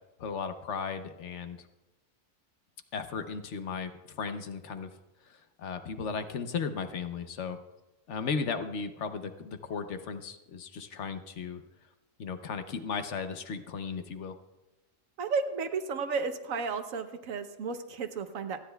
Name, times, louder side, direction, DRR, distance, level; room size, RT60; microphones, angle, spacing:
voice 1, 0.2-1.7 2.9-4.9 5.2-7.6 8.1-11.6 12.2-14.4, left 5 dB, 65° left, 9 dB, 1.0 m, -36 dB
voice 2, 15.2-18.6, right 5 dB, 80° right, 8 dB, 1.2 m, -33 dB
27.5 x 10.0 x 2.3 m, 1.0 s
omnidirectional pair, 1.4 m